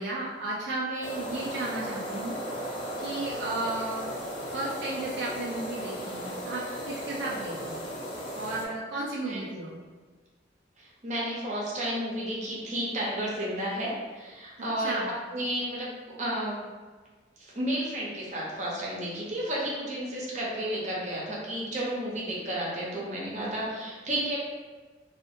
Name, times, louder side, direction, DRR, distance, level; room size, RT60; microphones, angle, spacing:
voice 1, 0.0-2.4 2.6-2.7 3.0-4.1 4.5-7.8 8.3-9.8 14.8-15.1, right 2 dB, 75° right, -5 dB, 0.4 m, -34 dB
sound 1, 1.0-8.7, equal, 30° left, 0.5 m, -36 dB
voice 2, 10.8-15.9 16.2-16.6 17.4-24.4, right 1 dB, 45° right, -5 dB, 0.7 m, -32 dB
2.7 x 2.5 x 2.5 m, 1.4 s
head